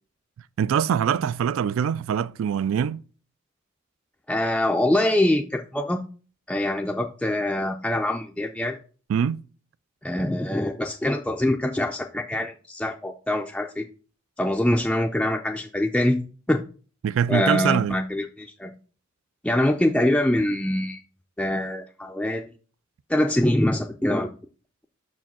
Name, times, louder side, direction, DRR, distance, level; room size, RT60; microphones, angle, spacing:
voice 1, 0.6-3.0 9.1-9.4 17.0-18.0, right 8 dB, 70° right, 0.3 m, -23 dB
voice 2, 4.3-6.0 6.5-8.8 10.0-13.9 14.4-16.6 17.3-18.7 19.4-21.0 21.4-22.4 23.1-24.3, left 1 dB, 5° left, 0.4 m, -24 dB
6.0 x 4.7 x 5.8 m
head